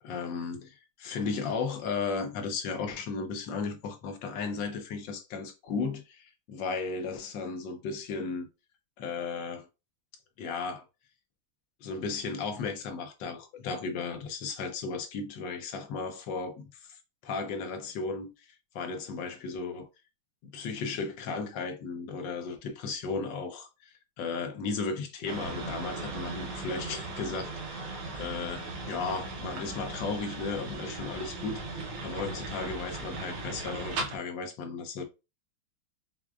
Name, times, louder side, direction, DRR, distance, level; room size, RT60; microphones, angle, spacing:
voice 1, 0.0-8.5 9.0-9.7 10.4-10.8 11.8-17.0 17.2-18.3 18.7-19.9 20.4-23.7 24.2-35.0, left 4 dB, 70° left, 1.3 m, -35 dB
sound 1, 25.3-34.2, right 3 dB, 85° right, 1.7 m, -38 dB
6.0 x 2.2 x 2.3 m
omnidirectional pair, 2.3 m